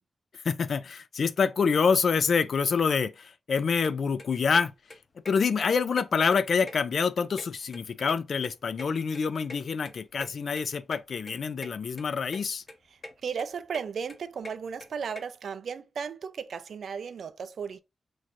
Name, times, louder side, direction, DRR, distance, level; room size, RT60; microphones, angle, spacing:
voice 1, 0.4-4.7 5.3-12.6, left 5 dB, 60° left, 0.3 m, -26 dB
sound 1, 3.8-3.9 4.2-4.6 4.9-5.0 5.2-5.3 5.6-6.4 6.6-7.8 8.1-9.6 9.8-9.9 10.2-10.3 10.6-10.7 10.9-11.0 11.3-11.7 12.0-12.4 12.7-13.1 13.4-15.2, left 2 dB, 40° left, 0.9 m, -43 dB
voice 2, 13.2-17.8, right 6 dB, 70° right, 0.4 m, -35 dB
3.1 x 2.4 x 4.2 m
wide cardioid pair, 105°, 0 cm